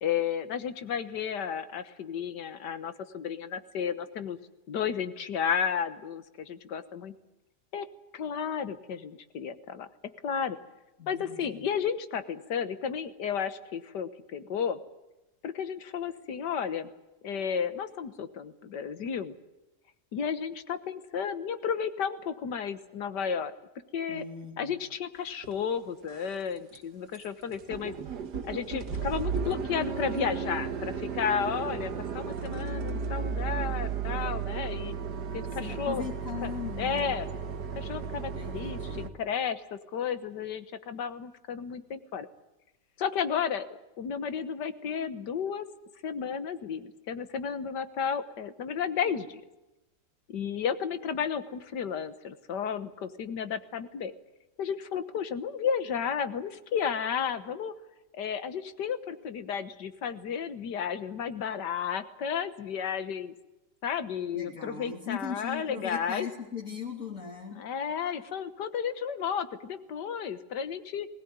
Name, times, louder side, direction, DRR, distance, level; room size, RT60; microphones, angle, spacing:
voice 1, 0.0-4.4 4.7-7.1 7.7-7.9 8.1-9.9 10.2-10.6 11.1-14.8 15.4-16.9 17.2-19.3 20.1-23.5 23.9-24.2 24.6-27.9 28.4-34.9 35.3-36.1 36.4-36.5 36.8-37.3 37.8-42.3 43.0-43.7 44.0-45.7 46.0-49.4 50.3-54.1 54.6-57.7 58.1-63.3 63.8-66.3 67.5-71.1, left 7 dB, 85° left, 12 dB, 1.9 m, -33 dB
voice 2, 11.0-11.7 24.1-24.8 35.6-37.1 38.3-39.1 64.3-67.7, left 6 dB, 50° left, -3 dB, 3.5 m, -39 dB
sound 1, 25.4-25.5 26.0-26.4 26.7-26.8 27.1-27.3 27.5-39.1, right 6 dB, 80° right, 1.9 m, -34 dB
21.0 x 18.5 x 9.5 m, 0.99 s
omnidirectional pair, 1.8 m